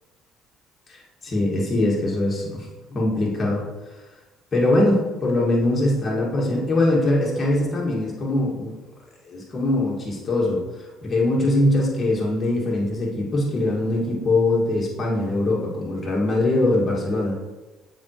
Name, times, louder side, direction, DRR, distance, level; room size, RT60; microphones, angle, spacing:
voice 1, 0.9-3.6 4.5-8.7 9.3-10.6 11.0-17.3, left 1 dB, 35° left, -4 dB, 2.1 m, -22 dB
7.3 x 5.3 x 3.1 m, 1.2 s
hypercardioid pair, 60°, 0 cm